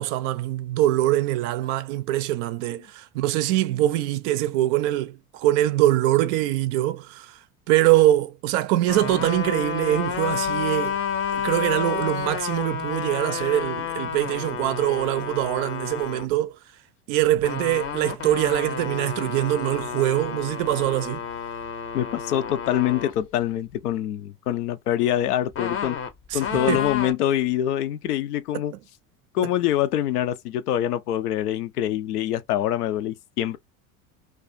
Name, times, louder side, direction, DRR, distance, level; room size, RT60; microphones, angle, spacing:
voice 1, 0.0-7.4 7.7-11.0 11.3-16.6 17.1-21.2 26.3-26.9, right 14 dB, 50° right, 0.5 m, -23 dB
sound 1, 8.9-16.2 17.4-23.1 25.5-27.1, left 7 dB, 30° left, 0.6 m, -30 dB
voice 2, 21.9-26.0 26.3-28.7 29.3-33.6, left 11 dB, 80° left, 0.6 m, -25 dB
2.3 x 2.2 x 2.5 m
hypercardioid pair, 80°, 46 cm